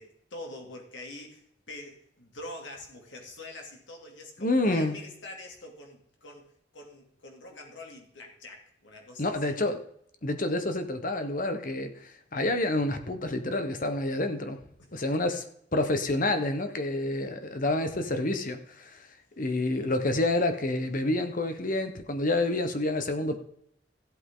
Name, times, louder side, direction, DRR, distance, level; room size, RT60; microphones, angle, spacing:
voice 1, 0.0-6.5 6.7-9.6 15.1-15.2, left 2 dB, 85° left, 1 dB, 2.8 m, -45 dB
voice 2, 4.4-5.0 9.2-9.8 10.2-14.6 14.9-15.4 15.7-19.1 19.4-23.4, left 2 dB, 45° left, 8 dB, 1.2 m, -28 dB
15.0 x 8.3 x 3.8 m, 0.70 s
head